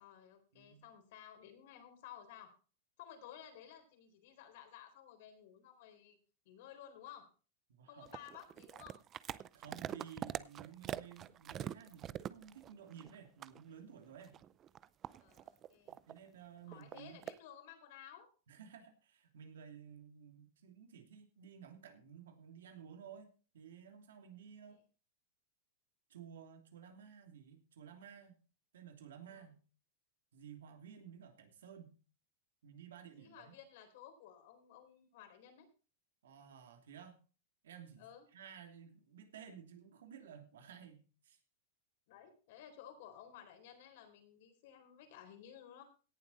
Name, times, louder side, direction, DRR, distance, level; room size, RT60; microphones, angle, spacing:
voice 1, 0.0-2.5 3.0-6.2 6.5-7.2 7.9-9.0 15.2-16.0 16.7-18.3 24.7-24.8 29.2-29.4 33.1-35.7 38.0-38.2 42.1-45.8, left 10 dB, 60° left, 5 dB, 4.0 m, -55 dB
voice 2, 0.5-0.9 7.7-8.2 9.5-14.4 15.9-17.2 18.5-24.8 26.1-28.4 28.7-29.6 30.3-31.9 32.6-33.5 36.2-37.2 37.6-38.1 38.3-41.4, right 8 dB, 90° right, 5 dB, 2.9 m, -54 dB
sound 1, 8.0-13.2 13.4-13.6 14.1-16.2 16.7-17.4, right 10 dB, 25° right, 0.5 m, -44 dB
17.5 x 7.4 x 4.2 m, 0.36 s
supercardioid pair, 145°, 0 cm